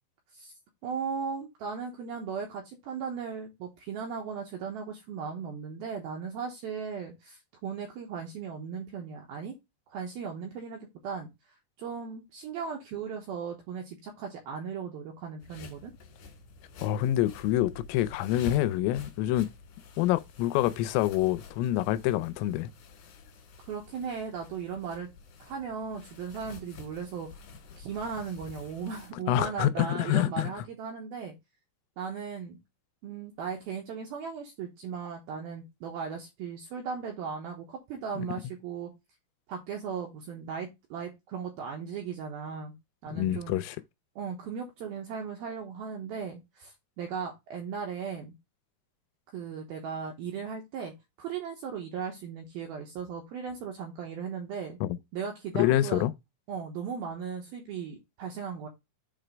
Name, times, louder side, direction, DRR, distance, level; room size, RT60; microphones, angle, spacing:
voice 1, 0.8-9.5 9.9-11.3 11.8-15.9 23.6-25.1 25.4-27.3 27.8-31.3 32.0-32.6 33.0-38.9 39.5-42.7 43.0-43.6 44.2-48.3 49.3-50.9 51.2-54.8 55.1-56.1 56.5-58.7, right 6 dB, 75° right, 2.2 m, -37 dB
sound 1, 15.4-29.1, left 3 dB, 65° left, 3.7 m, -48 dB
voice 2, 16.8-19.5 20.0-22.7 29.3-30.5 38.2-38.3 43.1-43.8 54.8-54.9 55.6-56.1, left 14 dB, 90° left, 3.2 m, -26 dB
7.8 x 3.3 x 5.0 m
omnidirectional pair, 5.7 m